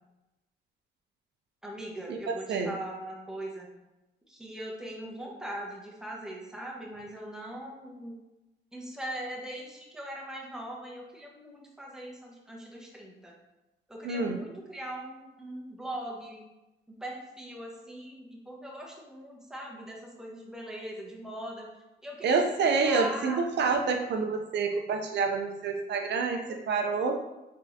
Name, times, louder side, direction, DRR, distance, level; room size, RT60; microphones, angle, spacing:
voice 1, 1.6-3.7 4.3-8.1 8.7-13.3 13.9-16.5 16.9-21.7 22.0-22.3 22.8-23.4, right 1 dB, 5° right, -3 dB, 1.1 m, -40 dB
voice 2, 14.0-14.4 22.2-27.2, right 4 dB, 60° right, 4 dB, 0.5 m, -27 dB
4.0 x 3.6 x 2.7 m, 1.0 s
cardioid pair, 90°, 20 cm